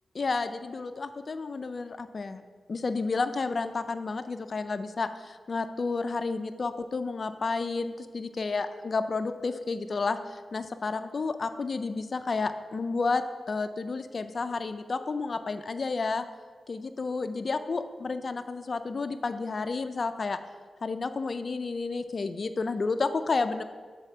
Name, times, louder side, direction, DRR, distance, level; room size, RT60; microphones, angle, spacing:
voice 1, 0.1-2.4 2.7-16.2 16.7-20.4 20.8-23.6, left 4 dB, 40° left, 9 dB, 0.3 m, -31 dB
7.4 x 4.1 x 5.4 m, 1.5 s
wide cardioid pair, 165°, 0 cm